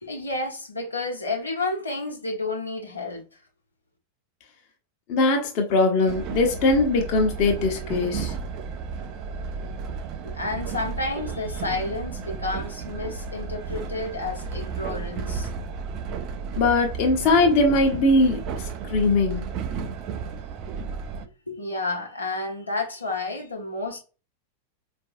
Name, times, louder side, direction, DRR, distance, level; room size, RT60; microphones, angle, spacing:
voice 1, 0.0-3.2 10.2-15.5 21.5-24.0, left 2 dB, 80° left, 1.0 m, -30 dB
voice 2, 5.1-8.3 16.6-19.4, left 2 dB, 45° left, 0.9 m, -21 dB
Train, 6.1-21.3, right 5 dB, 40° right, 0.4 m, -33 dB
4.6 x 2.6 x 2.6 m
figure-of-eight pair, 90°, 0 cm